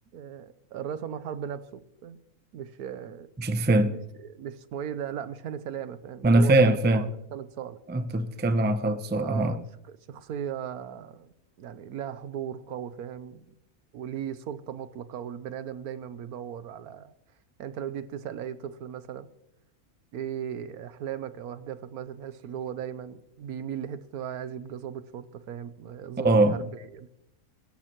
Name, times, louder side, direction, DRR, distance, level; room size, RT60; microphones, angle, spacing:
voice 1, 0.1-2.2 2.5-3.3 3.9-7.8 9.2-11.3 11.6-13.4 13.9-17.1 17.6-19.3 20.1-27.1, right 9 dB, 80° right, 1.3 m, -37 dB
voice 2, 3.4-3.9 6.2-7.1 7.9-9.6 26.2-26.6, right 2 dB, 15° right, 0.4 m, -22 dB
22.5 x 13.0 x 3.0 m
omnidirectional pair, 1.6 m